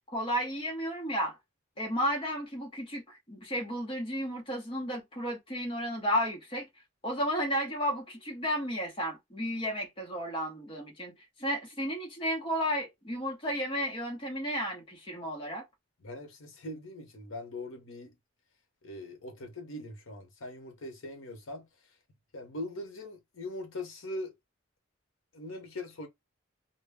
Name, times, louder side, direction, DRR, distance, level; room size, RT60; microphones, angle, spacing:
voice 1, 0.1-1.4 1.8-6.7 7.0-11.1 11.4-15.6, equal, 25° left, 0.9 m, -33 dB
voice 2, 16.0-18.1 18.8-21.7 22.3-24.4 25.3-26.1, left 1 dB, 70° left, 0.8 m, -41 dB
2.2 x 2.1 x 3.4 m
head